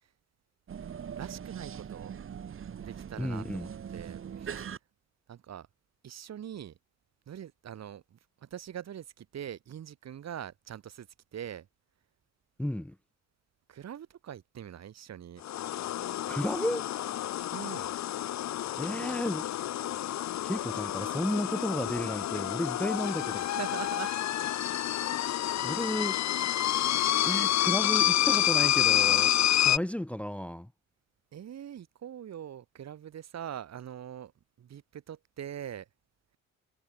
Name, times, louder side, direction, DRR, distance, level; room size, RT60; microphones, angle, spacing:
sound 1, 0.7-4.8, right 8 dB, 45° right, 1.4 m, -41 dB
voice 1, 1.1-2.1 2.8-4.7 5.3-5.7 6.0-6.8 7.3-11.7 13.7-15.4 17.3-17.9 23.3-24.2 25.5-25.9 27.2-27.3 31.3-34.3 34.6-35.9, right 10 dB, 60° right, 2.7 m, -43 dB
voice 2, 3.2-3.7 12.6-12.9 16.3-16.8 18.8-19.5 20.4-23.5 25.6-26.2 27.2-29.3 29.6-30.7, left 1 dB, 5° left, 1.1 m, -33 dB
sound 2, 15.4-29.8, left 12 dB, 65° left, 1.0 m, -28 dB
cardioid pair, 90°, 30 cm